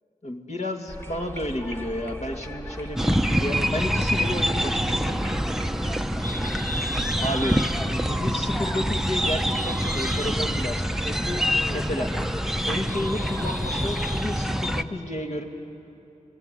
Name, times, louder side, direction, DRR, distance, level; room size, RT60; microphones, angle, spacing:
voice 1, 0.2-5.2 7.2-12.1 12.6-15.4, left 1 dB, 55° left, 2 dB, 2.5 m, -32 dB
sound 1, 0.9-14.4, equal, 15° left, 1.7 m, -35 dB
sound 2, 3.0-14.8, equal, 5° right, 0.8 m, -26 dB
28.5 x 20.0 x 9.4 m, 2.8 s
wide cardioid pair, 75°, 14 cm